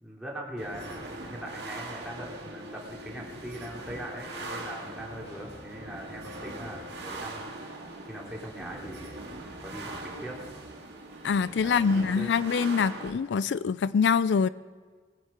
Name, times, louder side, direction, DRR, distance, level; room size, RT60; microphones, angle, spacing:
voice 1, 0.0-10.4 11.6-12.3, equal, 5° right, -3 dB, 2.8 m, -41 dB
sound 1, 0.6-13.1, right 2 dB, 70° right, 2.3 m, -41 dB
sound 2, 3.6-10.6, equal, 25° right, 2.7 m, -55 dB
sound 3, 5.0-10.4, left 1 dB, 35° left, 2.5 m, -52 dB
voice 2, 11.2-14.5, left 6 dB, 80° left, 17 dB, 0.4 m, -25 dB
20.0 x 10.0 x 5.1 m, 1.5 s
head